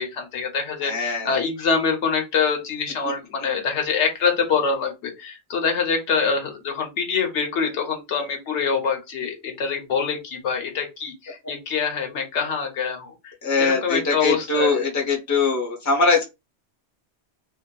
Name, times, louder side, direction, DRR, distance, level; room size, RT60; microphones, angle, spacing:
voice 1, 0.0-14.9, left 5 dB, 80° left, 3 dB, 1.0 m, -25 dB
voice 2, 0.8-1.4 13.4-16.3, left 3 dB, 20° left, 0 dB, 0.7 m, -22 dB
2.6 x 2.5 x 2.2 m, 0.23 s
omnidirectional pair, 1.2 m